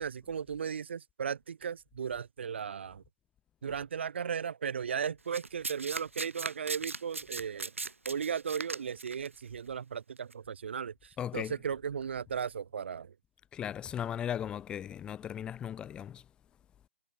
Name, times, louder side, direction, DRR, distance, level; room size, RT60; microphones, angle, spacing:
voice 1, 0.0-3.0 3.6-7.7 8.0-13.1, right 7 dB, 60° right, 4.5 m, -36 dB
Domestic sounds home sounds, 5.3-9.3 10.2-10.3, right 3 dB, 85° right, 4.0 m, -38 dB
voice 2, 11.2-11.5 13.5-16.3, left 9 dB, 15° left, 2.1 m, -37 dB
figure-of-eight pair, 140°, 7 cm